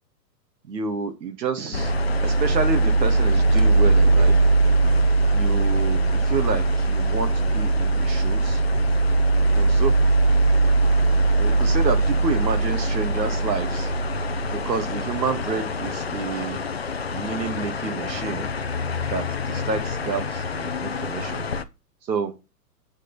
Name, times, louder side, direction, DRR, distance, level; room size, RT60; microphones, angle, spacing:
voice 1, 0.7-1.9 2.2-4.4 5.3-8.6 9.5-9.9 11.3-13.9 14.5-16.6 17.1-18.5 19.0-21.4 22.1-22.3, right 5 dB, 80° right, 8 dB, 2.0 m, -29 dB
sound 1, 1.7-21.6, right 2 dB, 40° left, 0.4 m, -21 dB
8.0 x 4.9 x 4.0 m, 0.27 s
hypercardioid pair, 180°, 50 cm